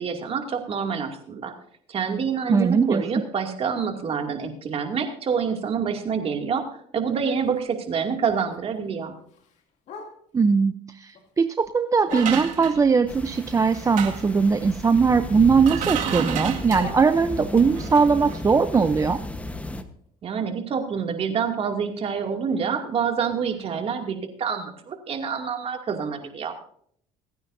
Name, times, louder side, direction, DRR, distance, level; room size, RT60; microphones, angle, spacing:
voice 1, 0.0-1.5 1.9-6.6 6.9-9.2 20.2-26.6, right 6 dB, 45° right, 4 dB, 2.5 m, -27 dB
voice 2, 2.5-3.0 10.3-10.7 11.0-19.2, right 5 dB, 25° right, 10 dB, 0.6 m, -20 dB
Bark, 7.3-10.5 10.9-12.8 13.3-15.1 15.4-17.7 18.1-22.1 22.4-22.5 22.8-23.2 23.6-23.7 24.1-24.2 24.7-24.8, left 4 dB, 60° left, 2.6 m, -45 dB
sound 1, 12.1-13.3 13.8-14.4 15.3-15.4 15.6-17.0 17.7-18.1 18.3-18.4, right 9 dB, 70° right, 2.1 m, -31 dB
sound 2, 13.1-19.8, left 2 dB, 10° left, 1.2 m, -34 dB
27.5 x 9.5 x 2.7 m, 0.64 s
supercardioid pair, 95°, 14 cm